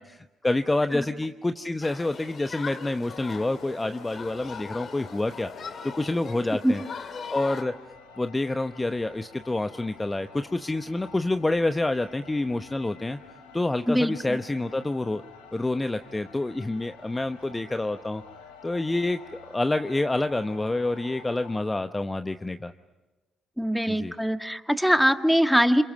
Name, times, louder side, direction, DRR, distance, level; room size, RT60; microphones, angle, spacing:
voice 1, 0.0-6.8 7.3-7.7 8.2-13.2 13.5-15.2 15.5-18.2 18.6-22.7 23.9-24.1, left 2 dB, 20° left, 9 dB, 0.9 m, -28 dB
Human group actions, 1.8-7.6, left 6 dB, 50° left, 2.2 m, -40 dB
sound 1, 3.0-21.6, left 5 dB, 85° left, 3.2 m, -50 dB
voice 2, 13.9-14.4 23.6-25.8, equal, ahead, 7 dB, 1.8 m, -22 dB
28.5 x 28.0 x 6.2 m, 1.1 s
hypercardioid pair, 45°, 0 cm